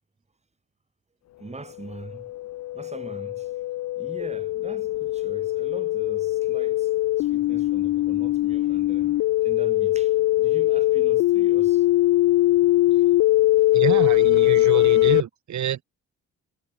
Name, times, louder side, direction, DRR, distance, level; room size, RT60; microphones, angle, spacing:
voice 1, 1.4-2.3 2.7-3.5 3.9-6.9 7.2-11.9, right 3 dB, 20° right, 5.8 m, -42 dB
sound 1, 1.9-15.2, left 16 dB, 65° left, 0.5 m, -21 dB
voice 2, 13.7-15.9, right 10 dB, 70° right, 6.6 m, -28 dB
cardioid pair, 90°, 30 cm